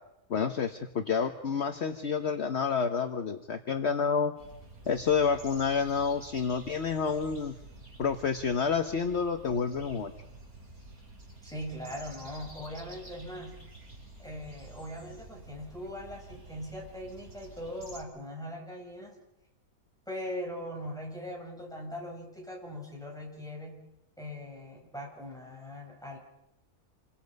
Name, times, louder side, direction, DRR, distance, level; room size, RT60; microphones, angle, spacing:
voice 1, 0.3-4.3 4.9-7.5 8.0-10.1, left 6 dB, 50° left, 6 dB, 1.3 m, -29 dB
sound 1, 4.4-18.0, right 1 dB, 85° right, 5.7 m, -50 dB
voice 2, 11.4-13.5 14.2-19.1 20.1-23.8 24.2-26.2, equal, ahead, -2 dB, 7.7 m, -40 dB
28.0 x 24.5 x 5.4 m, 0.90 s
omnidirectional pair, 1.5 m